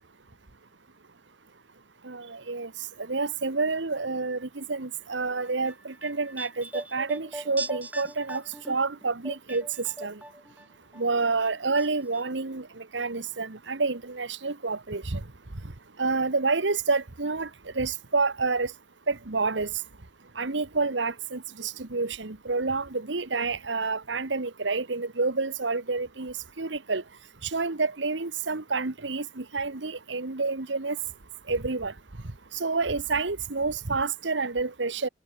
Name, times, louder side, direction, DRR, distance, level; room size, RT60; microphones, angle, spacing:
voice 1, 2.0-2.7 3.0-10.2 11.0-15.2 16.0-17.5 17.7-18.7 19.1-19.7 20.4-27.0 27.4-31.0 31.5-31.9 32.5-35.1, right 3 dB, 85° right, 1.4 m, -29 dB
sound 1, 5.4-10.7 10.9-11.9 12.1-12.2, right 1 dB, 10° right, 5.2 m, -40 dB
head